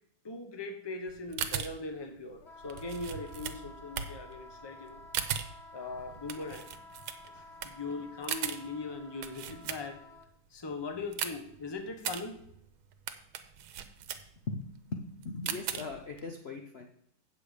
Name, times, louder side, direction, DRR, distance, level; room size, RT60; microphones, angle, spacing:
voice 1, 0.2-5.0 5.7-6.7 7.3-10.0 10.5-12.4, left 3 dB, 25° left, 5 dB, 0.5 m, -40 dB
sound 1, 1.1-10.2 10.6-16.2, right 9 dB, 80° right, 1.6 m, -39 dB
Wind instrument woodwind instrument, 2.4-10.3, left 2 dB, 45° left, 0.9 m, -52 dB
voice 2, 14.5-16.9, left 3 dB, 70° left, 3 dB, 0.6 m, -39 dB
8.6 x 6.9 x 4.9 m, 0.70 s
omnidirectional pair, 2.3 m